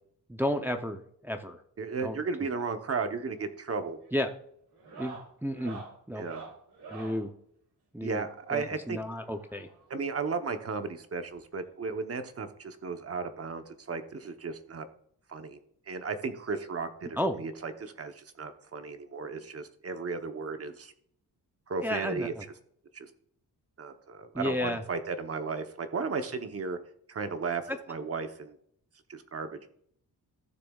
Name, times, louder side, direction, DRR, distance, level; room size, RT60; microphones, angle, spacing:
voice 1, 0.3-1.6 2.0-2.2 4.1-4.3 4.9-6.2 6.9-7.3 7.9-9.7 17.2-17.4 21.8-22.4 24.3-24.8 27.7-27.8, left 1 dB, 5° right, 4 dB, 0.6 m, -32 dB
voice 2, 1.8-4.0 6.2-6.4 8.0-9.0 9.9-14.9 15.3-15.6 15.9-20.9 21.7-22.3 22.9-23.1 23.8-26.8 27.1-28.6 29.1-29.6, right 4 dB, 35° right, 8 dB, 0.9 m, -35 dB
sound 1, 3.2-3.5 3.8-4.2 4.7-7.3 8.6-10.0 11.0-11.1 11.3-11.4 11.9-12.0 13.3-13.4 14.7-14.8, right 3 dB, 75° right, 3.2 m, -47 dB
15.5 x 6.7 x 2.4 m, 0.68 s
wide cardioid pair, 160°, 39 cm